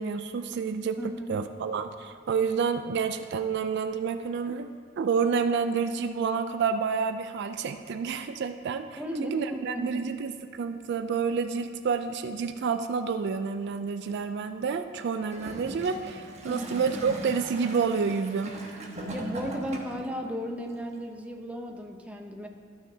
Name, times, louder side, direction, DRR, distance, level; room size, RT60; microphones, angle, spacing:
voice 1, 0.0-1.0 1.3-4.7 5.0-18.6, right 5 dB, 55° right, 9 dB, 0.3 m, -29 dB
voice 2, 1.0-1.4 9.0-10.3 16.4-16.7 19.1-22.5, equal, 5° right, 2 dB, 0.6 m, -35 dB
Gurgling / Toilet flush, 15.2-20.1 20.9-21.0, right 1 dB, 35° right, 1.2 m, -39 dB
13.5 x 6.4 x 2.8 m, 2.3 s
head